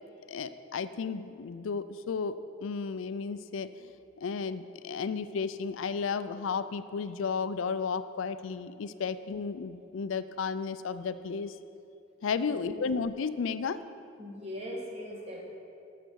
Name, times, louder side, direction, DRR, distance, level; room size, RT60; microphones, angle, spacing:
voice 1, 0.3-3.9 4.2-11.6 12.2-13.8, left 5 dB, 75° left, 13 dB, 0.4 m, -33 dB
voice 2, 12.4-12.8 14.2-15.4, equal, 30° right, -2 dB, 1.8 m, -40 dB
13.0 x 6.7 x 4.6 m, 2.6 s
head